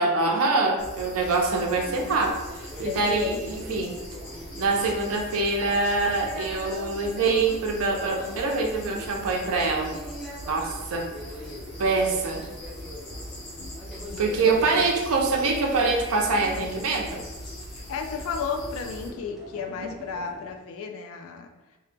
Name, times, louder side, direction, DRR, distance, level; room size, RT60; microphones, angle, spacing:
voice 1, 0.0-4.0 4.5-9.9 10.5-11.1 11.8-12.5 14.2-17.2 19.8-19.9, right 3 dB, 65° right, 2 dB, 0.4 m, -25 dB
sound 1, 0.8-19.1, left 1 dB, 90° left, 0.9 m, -41 dB
sound 2, 1.7-20.5, equal, ahead, 0.4 m, -43 dB
voice 2, 2.0-2.5 2.8-3.4 13.6-13.8 14.1-14.2 14.7-14.9 17.9-21.5, left 6 dB, 65° left, 4 dB, 0.3 m, -33 dB
2.0 x 2.0 x 3.2 m, 1.1 s
head